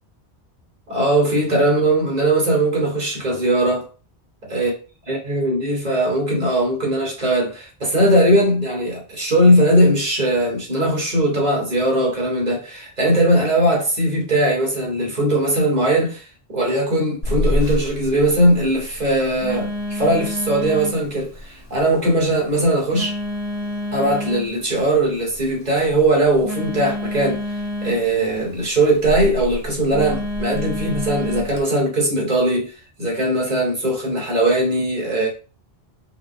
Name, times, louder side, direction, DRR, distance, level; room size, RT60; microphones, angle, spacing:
voice 1, 0.9-3.9 4.5-4.7 5.1-16.3 16.5-23.2 23.9-27.4 27.8-32.7 33.0-35.3, right 1 dB, 40° right, 1.5 m, -19 dB
Telephone, 17.2-31.6, left 1 dB, 35° left, 1.0 m, -29 dB
4.7 x 2.2 x 3.7 m
omnidirectional pair, 1.1 m